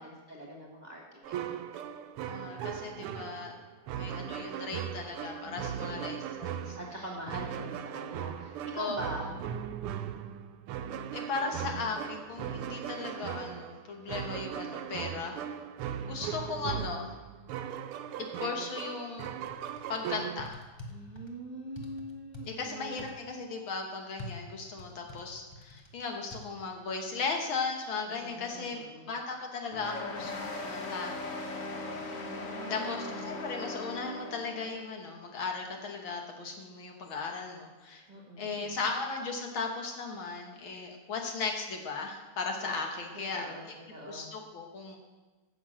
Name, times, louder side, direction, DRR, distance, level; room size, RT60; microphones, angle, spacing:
voice 1, 0.0-1.3 5.4-6.2 6.8-9.2 20.9-23.1 28.2-29.1 32.3-33.2 38.1-38.8 42.6-42.7 43.1-43.6 43.9-44.3, right 1 dB, 20° right, -2 dB, 1.4 m, -43 dB
sound 1, 1.2-20.5, right 9 dB, 90° right, 1.5 m, -38 dB
voice 2, 2.3-3.5 3.9-6.8 8.8-9.3 11.1-15.4 16.1-17.1 18.4-19.3 19.9-20.6 22.5-31.4 32.1-32.3 32.7-38.1 38.4-43.5 44.1-45.0, left 4 dB, 70° left, 2 dB, 2.0 m, -37 dB
sound 2, 19.4-20.0 20.4-21.3 21.8-22.5 23.0-23.1 24.2-25.9 26.3-26.4, left 2 dB, 25° left, 0.6 m, -45 dB
sound 3, 29.7-34.8, left 2 dB, 50° left, 1.2 m, -39 dB
9.9 x 6.5 x 7.4 m, 1.2 s
omnidirectional pair, 2.4 m